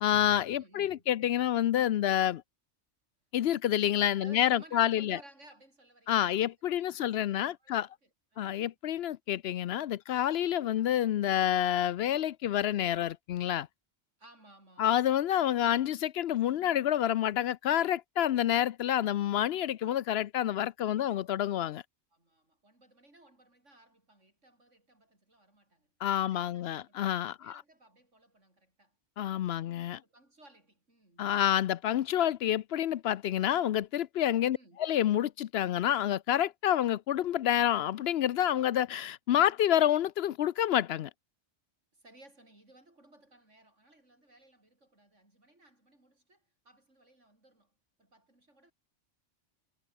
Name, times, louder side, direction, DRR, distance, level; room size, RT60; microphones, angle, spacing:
voice 1, 0.0-2.4 3.3-5.2 6.1-7.9 8.4-13.7 14.8-21.8 26.0-27.6 29.2-30.0 31.2-41.1, left 11 dB, 65° left, 0.7 m, -28 dB
voice 2, 0.6-1.1 4.2-6.5 6.8-8.7 10.7-11.0 14.2-14.9 20.8-21.3 22.1-25.9 26.3-29.0 29.5-31.4 34.5-34.8 41.9-47.7 48.0-48.7, right 1 dB, 90° right, 7.5 m, -59 dB
omnidirectional pair, 1.2 m